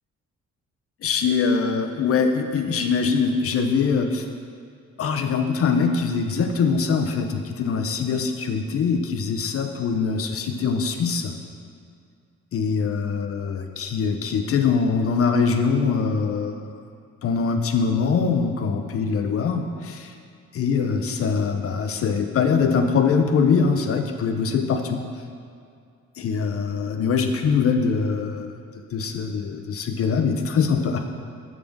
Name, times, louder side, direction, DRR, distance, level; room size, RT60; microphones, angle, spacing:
voice 1, 1.0-4.2 5.0-11.3 12.5-16.7 17.2-20.1 20.5-25.0 26.2-28.5 28.9-31.0, left 5 dB, 50° left, 6 dB, 0.6 m, -23 dB
6.5 x 3.7 x 5.1 m, 2.3 s
cardioid pair, 90°, 30 cm